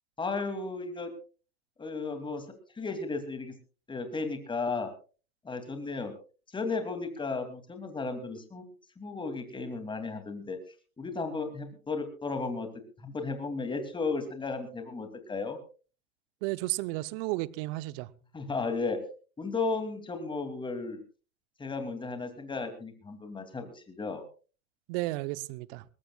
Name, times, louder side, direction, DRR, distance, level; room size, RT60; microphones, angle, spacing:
voice 1, 0.2-1.1 1.8-2.5 2.7-3.5 3.9-4.9 5.4-6.1 6.5-8.6 9.0-10.6 11.0-12.7 13.0-15.6 18.3-19.0 19.4-21.0 21.6-24.2, left 4 dB, 10° left, 2.6 m, -34 dB
voice 2, 16.4-18.1 24.9-25.8, right 20 dB, 40° right, 0.8 m, -33 dB
21.5 x 19.0 x 2.3 m
hypercardioid pair, 115°, 43 cm